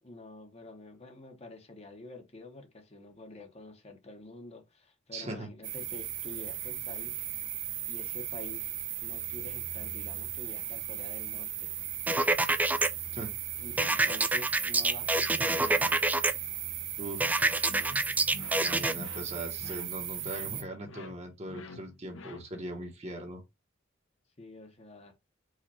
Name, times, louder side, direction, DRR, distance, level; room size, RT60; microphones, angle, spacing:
voice 1, 0.0-7.3 7.8-8.7 9.0-11.7 13.6-16.0 24.4-25.1, left 2 dB, 30° left, 1.0 m, -48 dB
voice 2, 5.1-5.5 13.1-13.3 17.0-17.6 18.6-23.4, right 1 dB, 35° right, 1.2 m, -40 dB
sound 1, 5.6-20.6, right 11 dB, 65° right, 0.8 m, -37 dB
sound 2, 12.1-12.9 13.8-16.3 17.2-18.9, right 2 dB, 10° right, 0.3 m, -26 dB
sound 3, 17.7-22.8, left 3 dB, 75° left, 0.8 m, -47 dB
5.0 x 2.5 x 4.1 m
head